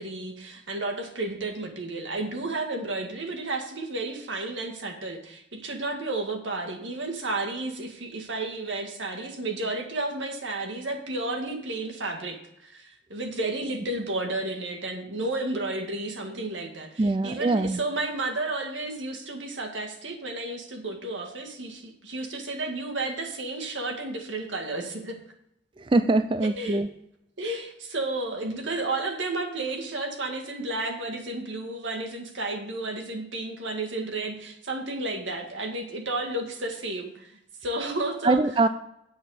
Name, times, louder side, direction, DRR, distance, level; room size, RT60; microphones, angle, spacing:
voice 1, 0.0-25.2 26.5-26.8 27.4-37.3 37.6-38.4, right 2 dB, 90° right, 3 dB, 2.0 m, -32 dB
voice 2, 17.0-17.8 25.9-26.9 38.2-38.7, right 2 dB, 25° right, 11 dB, 0.4 m, -22 dB
8.8 x 7.9 x 5.0 m, 0.77 s
head